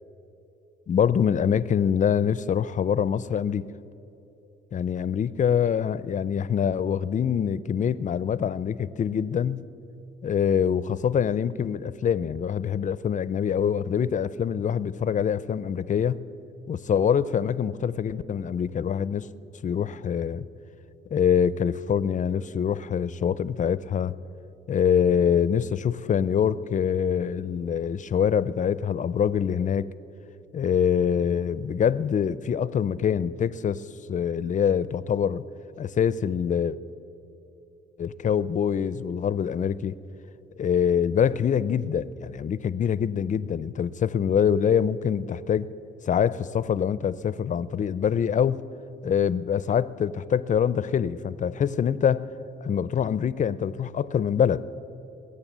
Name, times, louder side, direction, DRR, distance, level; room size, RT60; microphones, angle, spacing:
voice 1, 0.9-3.7 4.7-9.6 10.2-16.2 16.7-19.3 19.6-20.5 21.1-24.1 24.7-29.9 30.5-35.4 35.8-36.8 38.0-40.0 40.6-45.7 46.1-48.6 49.0-52.2 52.6-54.7, left 8 dB, 40° left, 17 dB, 0.5 m, -25 dB
21.5 x 8.5 x 7.4 m, 2.9 s
cardioid pair, 90°, 20 cm